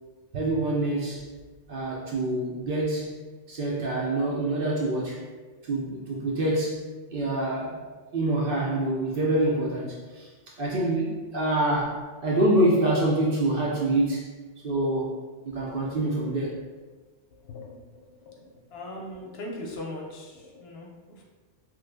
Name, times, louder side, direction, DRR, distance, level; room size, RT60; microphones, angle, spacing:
voice 1, 0.3-1.2 1.7-3.1 3.5-5.2 5.7-6.8 7.1-7.8 8.1-10.3 10.6-14.3 14.6-15.1 15.5-16.6, right 1 dB, 60° right, -3 dB, 0.7 m, -26 dB
voice 2, 17.4-17.8 18.3-21.2, left 1 dB, 65° left, -2 dB, 0.7 m, -39 dB
3.2 x 2.0 x 3.3 m, 1.4 s
omnidirectional pair, 1.2 m